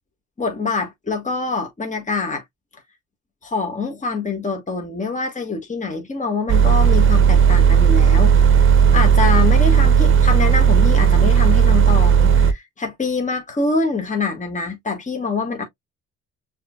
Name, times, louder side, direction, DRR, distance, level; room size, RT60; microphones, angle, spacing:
voice 1, 0.4-2.4 3.4-8.7 8.9-15.6, left 4 dB, 25° left, 1.7 m, -25 dB
sound 1, 6.5-12.5, right 7 dB, 40° right, 0.8 m, -14 dB
6.3 x 3.2 x 2.3 m
cardioid pair, 90°, 30 cm